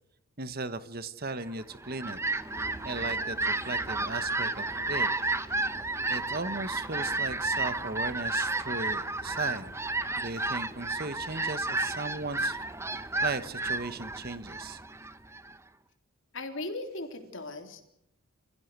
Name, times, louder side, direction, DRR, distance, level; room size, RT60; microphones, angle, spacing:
voice 1, 0.4-2.2 2.8-5.1 6.1-9.7 10.2-12.7 13.2-14.8, right 3 dB, 45° right, 13 dB, 1.2 m, -37 dB
Fowl, 1.6-15.6, right 2 dB, 10° right, 0.9 m, -32 dB
sound 1, 2.4-8.3, right 1 dB, 75° right, 4.6 m, -52 dB
voice 2, 16.3-17.8, left 2 dB, 60° left, 5 dB, 3.8 m, -38 dB
27.5 x 15.5 x 8.3 m, 0.81 s
head